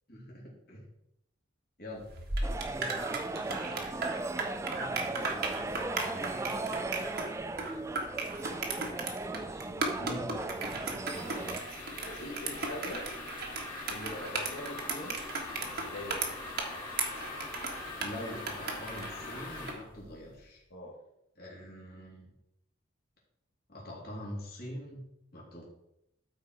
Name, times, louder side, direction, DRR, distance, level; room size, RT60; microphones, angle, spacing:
voice 1, 0.1-0.9 1.8-2.1 10.0-10.3 18.0-20.6 21.4-22.3 23.7-25.0 25.3-25.7, equal, 50° left, -4 dB, 3.4 m, -43 dB
sound 1, 2.1-19.8, right 3 dB, 50° right, 1.5 m, -36 dB
sound 2, 2.4-11.6, right 2 dB, 15° right, 0.3 m, -37 dB
voice 2, 3.3-4.2 4.9-6.3 9.4-10.1 10.5-11.6 12.0-13.1 13.9-15.3 15.6-16.4 20.7-20.9, left 1 dB, 85° left, -6 dB, 2.0 m, -45 dB
sound 3, 11.1-19.7, left 3 dB, 25° left, 2.8 m, -43 dB
12.5 x 5.0 x 4.6 m, 0.81 s
head